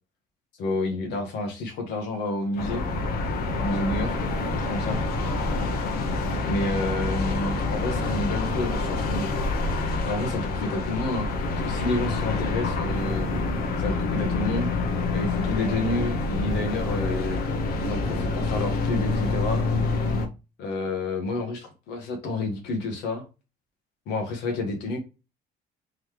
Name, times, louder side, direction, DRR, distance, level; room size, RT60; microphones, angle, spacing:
voice 1, 0.6-2.8 3.6-4.2 4.6-5.0 6.4-9.3 10.0-11.3 11.6-13.3 13.8-14.7 15.1-17.4 17.8-19.6 20.6-23.2 24.1-25.0, left 2 dB, 80° left, 3 dB, 1.1 m, -29 dB
sound 1, 2.6-20.3, left 3 dB, 65° left, 0.9 m, -27 dB
3.9 x 3.1 x 3.2 m, 0.29 s
cardioid pair, 110°, 17 cm